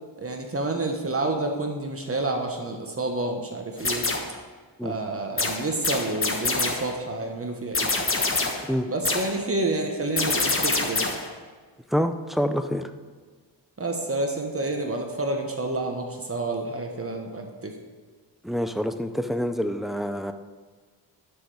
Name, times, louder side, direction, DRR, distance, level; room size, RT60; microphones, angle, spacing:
voice 1, 0.2-4.1 4.8-7.9 8.9-11.0 13.8-17.7, right 2 dB, 30° right, 3 dB, 1.3 m, -29 dB
sound 1, 3.8-4.4 5.4-7.0 7.7-8.7 9.1-9.4 10.2-11.3, left 3 dB, 30° left, 1.3 m, -26 dB
voice 2, 11.9-12.9 18.4-20.3, equal, ahead, 8 dB, 0.6 m, -26 dB
11.0 x 6.6 x 4.9 m, 1.5 s
cardioid pair, 95°, 43 cm